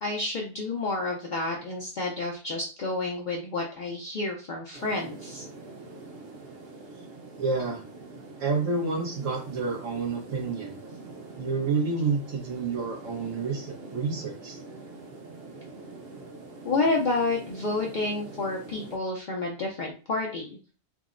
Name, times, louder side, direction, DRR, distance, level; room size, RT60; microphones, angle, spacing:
voice 1, 0.0-5.4 16.6-20.6, left 3 dB, 65° left, -1 dB, 0.4 m, -29 dB
sound 1, 4.7-19.0, right 3 dB, 60° right, 0.8 m, -44 dB
voice 2, 7.4-7.8 8.4-10.7 11.4-14.6, right 4 dB, 85° right, -1 dB, 1.4 m, -29 dB
3.5 x 2.0 x 2.4 m, 0.36 s
omnidirectional pair, 1.3 m